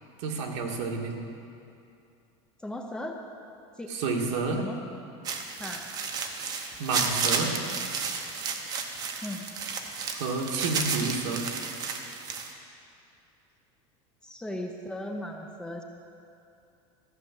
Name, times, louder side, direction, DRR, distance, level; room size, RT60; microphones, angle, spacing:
voice 1, 0.2-1.1 3.9-4.6 6.8-7.5 10.1-11.4, right 4 dB, 80° right, 1 dB, 1.8 m, -30 dB
voice 2, 2.6-3.2 3.8-3.9 4.6-4.8 5.6-5.9 9.2-9.4 14.2-15.8, left 1 dB, 5° left, 2 dB, 0.6 m, -36 dB
sound 1, 5.2-12.5, right 5 dB, 25° right, 0.8 m, -32 dB
14.5 x 6.6 x 7.5 m, 2.6 s
cardioid pair, 170°, 15 cm